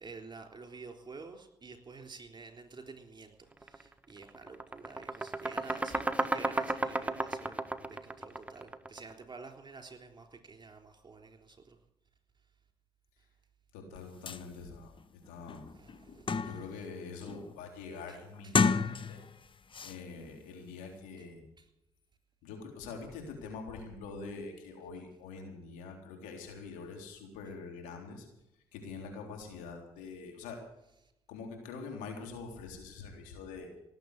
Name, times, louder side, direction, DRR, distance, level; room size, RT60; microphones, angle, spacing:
voice 1, 0.0-3.4 3.6-11.8 15.7-16.5, right 4 dB, 35° right, 5 dB, 3.6 m, -50 dB
sound 1, 3.6-3.8 4.2-9.1, right 2 dB, 10° right, 1.4 m, -33 dB
voice 2, 13.7-15.6 16.4-19.2 19.8-21.4 22.4-28.3 28.7-30.6 31.3-33.7, left 4 dB, 85° left, 2 dB, 3.6 m, -45 dB
sound 2, 13.9-14.0 14.3-14.4 15.0-15.1 15.5-16.8 17.2-17.6 18.4-19.4 19.7-20.0, left 5 dB, 40° left, 1.0 m, -31 dB
18.5 x 7.9 x 8.2 m, 0.83 s
hypercardioid pair, 50°, 13 cm